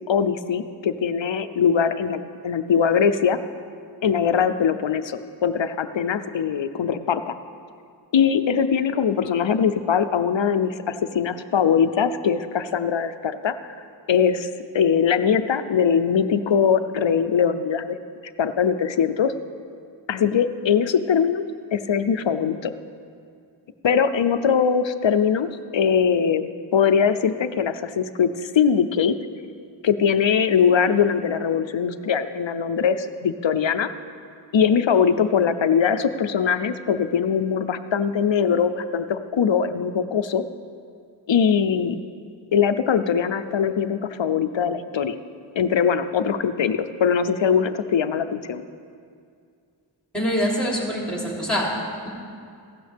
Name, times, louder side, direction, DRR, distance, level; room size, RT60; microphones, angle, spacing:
voice 1, 0.1-3.4 4.0-7.3 8.1-13.6 14.1-14.5 14.7-18.0 18.4-19.3 20.1-21.5 21.7-22.7 23.8-29.2 29.8-33.9 34.5-40.4 41.3-42.0 42.5-45.2 45.6-48.7, left 7 dB, 70° left, 10 dB, 0.6 m, -21 dB
voice 2, 50.1-51.7, equal, ahead, -3 dB, 3.1 m, -24 dB
15.5 x 12.0 x 3.4 m, 2.3 s
wide cardioid pair, 60°, 47 cm